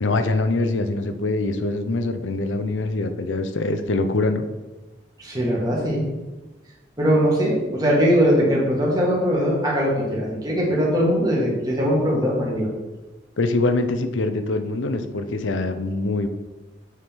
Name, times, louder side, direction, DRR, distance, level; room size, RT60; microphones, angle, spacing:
voice 1, 0.0-4.5 13.4-16.3, left 2 dB, 85° left, 8 dB, 0.6 m, -24 dB
voice 2, 5.2-6.0 7.0-12.7, equal, 20° right, -4 dB, 1.8 m, -21 dB
8.1 x 4.4 x 3.6 m, 1.1 s
head